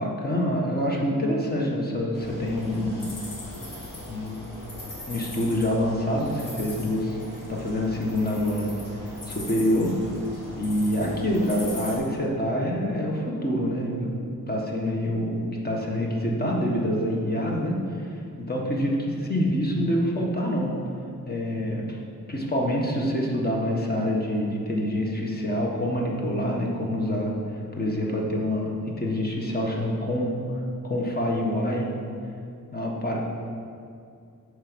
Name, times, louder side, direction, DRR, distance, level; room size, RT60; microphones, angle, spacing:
voice 1, 0.0-3.1 4.1-4.4 5.1-7.2 7.5-8.7 9.3-9.9 10.6-17.8 18.4-20.7 21.3-22.0 22.3-27.3 27.8-30.3 30.8-31.9 32.7-33.2, equal, 30° left, -2 dB, 1.4 m, -26 dB
sound 1, 2.1-12.0, left 1 dB, 70° left, 2.1 m, -39 dB
8.8 x 4.9 x 6.3 m, 2.4 s
wide cardioid pair, 125°, 34 cm